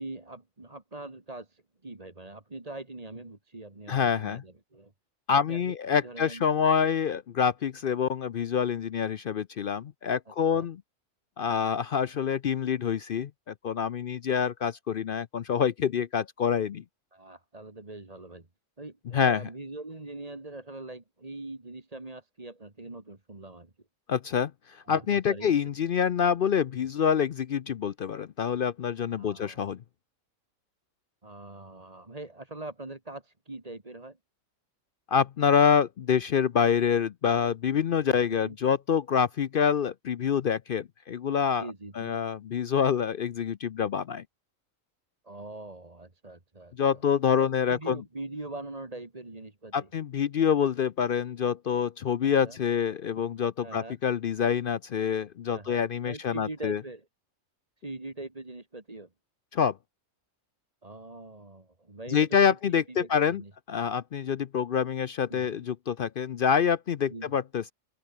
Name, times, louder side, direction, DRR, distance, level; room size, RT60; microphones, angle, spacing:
voice 1, 0.0-4.9 5.3-6.5 10.5-10.7 17.1-18.5 18.8-23.7 24.9-25.5 29.2-29.7 31.2-34.2 38.0-38.6 41.5-42.2 45.2-47.0 47.4-49.9 52.2-52.6 53.6-54.0 55.5-57.1 57.8-59.1 60.8-63.5 65.3-65.7 67.1-67.3, right 2 dB, 25° right, 2.4 m, -42 dB
voice 2, 3.9-4.4 5.3-10.8 11.4-16.8 19.1-19.4 24.1-29.8 35.1-41.7 42.0-44.2 46.8-48.0 49.7-56.8 59.5-59.8 62.1-63.4 63.7-67.7, left 7 dB, 60° left, 0.6 m, -26 dB
omnidirectional pair, 1.4 m